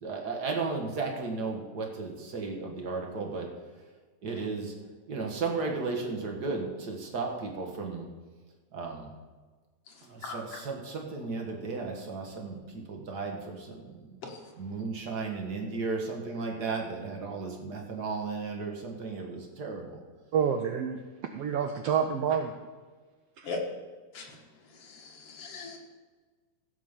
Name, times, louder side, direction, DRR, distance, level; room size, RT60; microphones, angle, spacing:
voice 1, 0.0-3.5 4.2-4.7 5.1-8.1 8.7-9.1 10.1-14.1 14.6-20.0, right 4 dB, 40° right, 1 dB, 1.6 m, -34 dB
voice 2, 20.3-21.0 21.3-22.5 23.4-23.5, right 7 dB, 90° right, 6 dB, 1.3 m, -28 dB
voice 3, 24.7-25.8, left 4 dB, 50° left, 0 dB, 2.4 m, -39 dB
15.5 x 5.3 x 7.3 m, 1.4 s
omnidirectional pair, 3.6 m